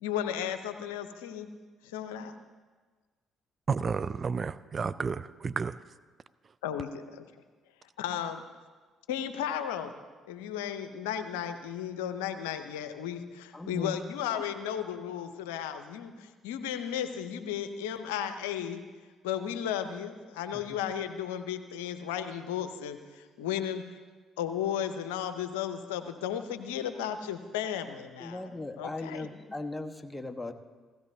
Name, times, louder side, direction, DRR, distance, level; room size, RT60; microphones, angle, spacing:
voice 1, 0.0-1.5 1.8-2.3 6.6-7.2 8.0-8.4 9.1-9.9 10.3-18.8 19.2-23.8 24.4-28.5 28.8-29.3, left 9 dB, 80° left, 9 dB, 0.7 m, -34 dB
voice 2, 3.7-5.8, right 5 dB, 40° right, 15 dB, 0.4 m, -31 dB
voice 3, 13.5-14.0 14.3-14.4 20.5-20.6 28.2-30.5, left 2 dB, 15° left, 6 dB, 1.2 m, -38 dB
16.0 x 16.0 x 2.7 m, 1.4 s
hypercardioid pair, 50°, 0 cm